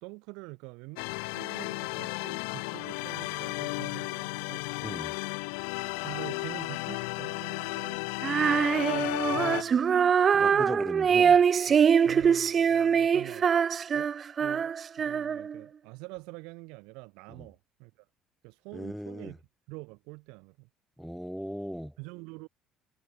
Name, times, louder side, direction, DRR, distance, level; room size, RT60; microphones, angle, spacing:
voice 1, 0.0-1.1 1.3-4.6 6.0-8.0 8.5-9.9 10.3-10.8 11.6-13.5 13.9-14.1 14.4-18.1 18.4-19.4 19.7-20.7 22.0-22.5, right 29 dB, 80° right, 1.2 m, -45 dB
sound 1, 1.0-9.6, left 39 dB, 85° left, 0.5 m, -34 dB
voice 2, 4.8-5.1 10.3-11.4 17.4-17.5 18.7-19.4 21.0-21.9, equal, ahead, 1.7 m, -37 dB
Female singing, 8.2-15.6, right 7 dB, 40° right, 0.4 m, -24 dB
supercardioid pair, 75°, 0 cm